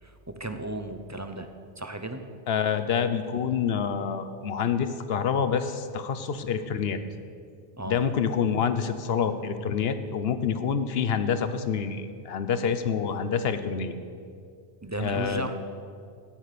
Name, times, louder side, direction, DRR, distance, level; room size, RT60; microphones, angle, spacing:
voice 1, 0.0-1.5 1.8-2.2 7.8-8.0 14.8-15.5, right 2 dB, 20° right, 7 dB, 0.7 m, -34 dB
voice 2, 2.5-7.0 7.8-13.9 15.0-15.5, left 7 dB, 65° left, 11 dB, 1.0 m, -27 dB
13.5 x 9.2 x 6.7 m, 2.3 s
omnidirectional pair, 1.1 m